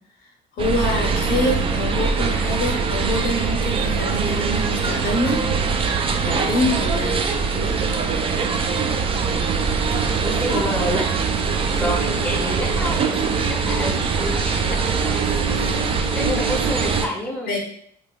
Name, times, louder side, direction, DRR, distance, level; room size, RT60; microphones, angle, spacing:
voice 1, 0.5-5.8 6.2-7.9 17.5-17.6, left 1 dB, 60° left, 0 dB, 0.8 m, -26 dB
sound 1, 0.6-17.1, right 5 dB, 35° right, 0.3 m, -22 dB
voice 2, 10.2-11.2 11.8-15.7 16.1-17.6, left 1 dB, 10° left, -1 dB, 0.7 m, -29 dB
3.3 x 3.1 x 2.3 m, 0.66 s
cardioid pair, 110°, 17 cm